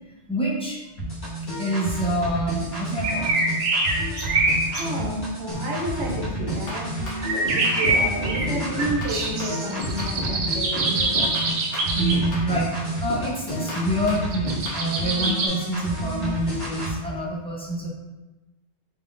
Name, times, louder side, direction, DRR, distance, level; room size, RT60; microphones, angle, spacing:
voice 1, 0.3-0.8 1.6-3.3 11.9-17.9, right 1 dB, 10° left, -5 dB, 0.4 m, -27 dB
sound 1, 1.0-17.0, right 1 dB, 65° left, 1.9 m, -30 dB
sound 2, 3.0-4.8 7.2-12.2 14.2-15.5, right 3 dB, 55° right, 0.7 m, -24 dB
voice 2, 4.6-7.0 7.3-11.7, right 1 dB, 75° right, 0 dB, 1.0 m, -31 dB
sound 3, 5.5-5.8 6.1-8.1 8.4-10.5 10.8-12.8 13.1-14.8, left 1 dB, 90° left, 1.2 m, -34 dB
3.8 x 3.5 x 2.5 m, 1.1 s
omnidirectional pair, 1.2 m